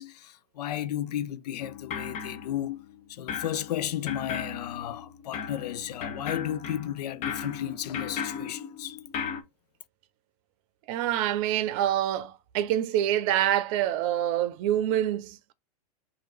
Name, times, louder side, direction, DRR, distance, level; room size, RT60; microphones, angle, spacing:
voice 1, 0.0-9.0, left 11 dB, 80° left, 0.5 m, -34 dB
sound 1, 1.6-2.9 3.3-9.4, left 7 dB, 35° left, 0.7 m, -37 dB
voice 2, 10.9-15.5, right 11 dB, 55° right, 0.6 m, -26 dB
3.0 x 2.6 x 4.4 m
hypercardioid pair, 110°, 20 cm